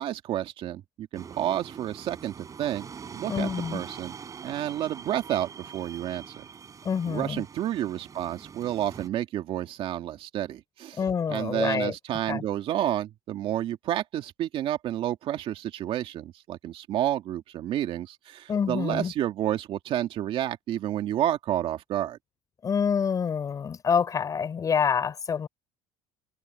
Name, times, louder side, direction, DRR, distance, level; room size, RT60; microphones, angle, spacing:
voice 1, 0.0-2.8 3.1-4.1 4.4-6.4 7.1-11.0 11.3-22.2, right 12 dB, 55° right, 2.2 m, -30 dB
sound 1, 1.1-9.1, right 6 dB, 30° right, 7.8 m, -43 dB
voice 2, 3.3-3.8 6.8-7.4 11.0-11.9 12.3-12.4 18.5-19.1 22.6-25.5, left 6 dB, 30° left, 5.8 m, -27 dB
cardioid pair, 120°, 11 cm